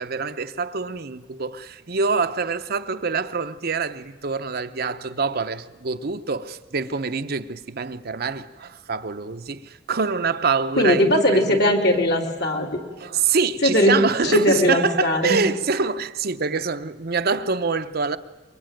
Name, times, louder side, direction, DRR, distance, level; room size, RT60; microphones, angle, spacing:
voice 1, 0.0-11.6 13.0-18.2, right 4 dB, 55° right, 0.8 m, -25 dB
voice 2, 10.8-12.7 13.6-13.9 14.2-15.4, left 1 dB, 60° left, 3.3 m, -19 dB
23.0 x 22.5 x 9.2 m
head